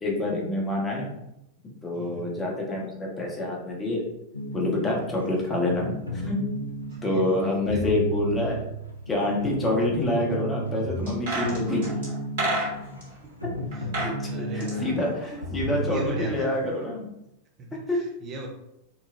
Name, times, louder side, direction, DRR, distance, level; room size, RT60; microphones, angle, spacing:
voice 1, 0.0-1.1 1.8-4.0 4.5-6.4 7.0-8.6 9.1-11.8 14.0-14.1 14.5-17.1 17.9-18.0, left 2 dB, 20° left, -2 dB, 0.8 m, -27 dB
voice 2, 1.9-2.3 7.1-7.2 7.7-7.9 12.7-12.8 13.2-13.4 14.2-15.0 15.8-16.5 17.6-18.5, right 4 dB, 30° right, 1 dB, 0.4 m, -38 dB
sound 1, 4.3-16.4, right 1 dB, 90° left, 0.4 m, -33 dB
sound 2, 11.1-13.1 13.7-14.2 14.4-15.8 16.1-16.2, right 2 dB, 60° right, 1.4 m, -30 dB
3.9 x 2.1 x 2.4 m, 0.84 s
figure-of-eight pair, 90°, 0 cm